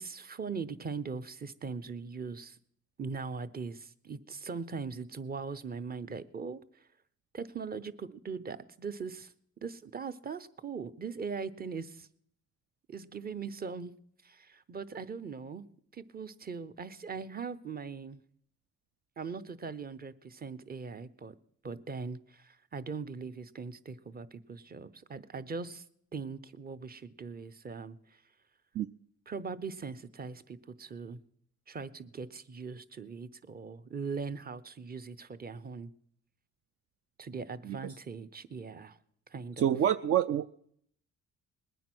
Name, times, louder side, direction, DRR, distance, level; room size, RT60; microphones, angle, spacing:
voice 1, 0.0-2.6 3.0-6.6 7.3-9.3 9.6-12.1 12.9-13.9 14.2-15.6 15.9-18.2 19.2-21.3 21.6-25.8 26.1-28.2 29.3-31.2 31.7-35.9 37.2-39.0 39.3-39.7, right 5 dB, 30° right, 13 dB, 0.9 m, -40 dB
voice 2, 39.6-40.6, right 10 dB, 50° right, 12 dB, 0.5 m, -27 dB
20.5 x 9.2 x 6.1 m, 0.67 s
cardioid pair, 90°, 30 cm